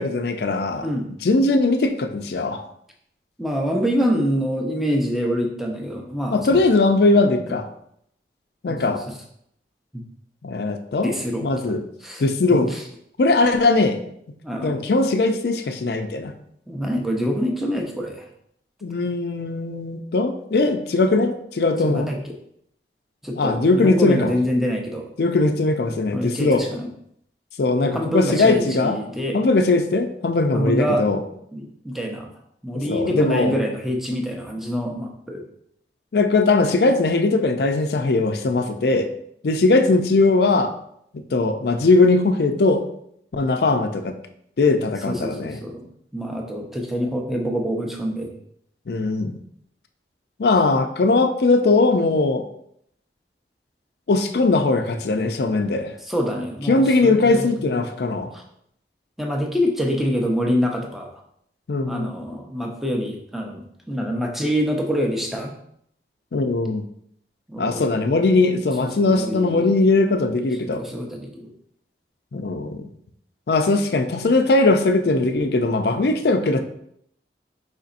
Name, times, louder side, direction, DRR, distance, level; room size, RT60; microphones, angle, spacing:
voice 1, 0.0-0.9 1.2-2.6 6.3-7.7 8.6-9.0 10.4-11.1 11.4-11.8 12.2-12.8 13.2-14.0 14.6-16.3 18.8-22.1 23.4-24.3 25.2-26.6 27.6-29.0 29.3-31.2 32.9-33.6 36.1-39.1 39.4-40.7 41.3-42.8 43.3-44.2 44.6-45.6 48.9-49.4 50.4-52.4 54.1-55.9 56.7-58.3 61.7-62.1 66.3-66.8 67.6-70.8 72.3-72.9 73.5-76.6, left 3 dB, 65° left, 7 dB, 0.4 m, -20 dB
voice 2, 3.4-6.6 8.7-9.1 9.9-10.0 11.0-11.5 12.0-12.2 12.5-12.8 14.4-14.8 16.7-18.3 21.8-22.3 23.2-25.0 26.1-26.9 27.9-29.4 30.5-31.0 31.5-32.3 32.6-35.4 45.1-48.3 50.7-50.8 56.1-57.7 58.3-58.4 59.2-61.1 61.9-65.5 67.5-67.9 68.8-69.7 70.6-71.5, equal, ahead, 1 dB, 0.6 m, -26 dB
4.9 x 4.0 x 2.5 m, 0.71 s
head